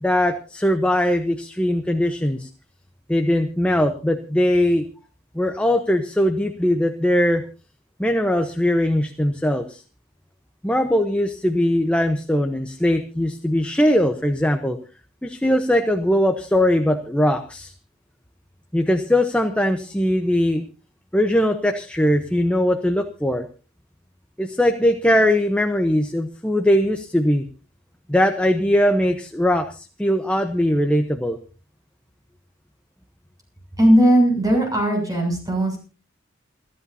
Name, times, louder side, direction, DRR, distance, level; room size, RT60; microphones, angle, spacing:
voice 1, 0.0-2.5 3.1-4.8 5.3-7.4 8.0-9.8 10.6-14.8 15.2-17.7 18.7-20.6 21.1-23.4 24.4-27.4 28.1-31.4, left 1 dB, 5° left, 5 dB, 1.0 m, -20 dB
voice 2, 33.8-35.8, right 1 dB, 20° right, 2 dB, 7.1 m, -17 dB
28.5 x 11.0 x 2.8 m, 0.35 s
head